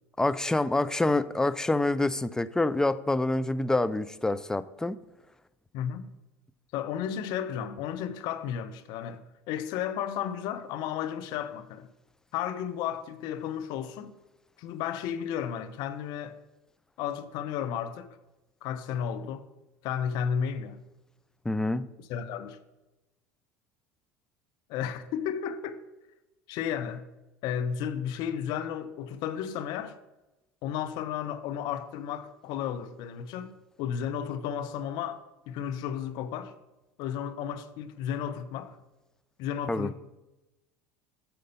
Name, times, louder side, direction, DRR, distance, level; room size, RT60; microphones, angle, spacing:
voice 1, 0.2-5.0 21.4-21.9 39.7-39.9, left 2 dB, 10° left, 0.4 m, -26 dB
voice 2, 5.7-6.1 6.7-9.2 9.5-11.9 12.3-14.1 14.6-16.4 17.0-18.2 18.6-19.4 19.8-20.8 22.1-22.6 24.7-25.8 26.5-27.0 27.4-30.0 30.6-35.2 35.5-36.5 37.0-38.8 39.4-40.0, left 8 dB, 60° left, 0.8 m, -33 dB
8.9 x 6.5 x 5.4 m
hypercardioid pair, 80°, 8 cm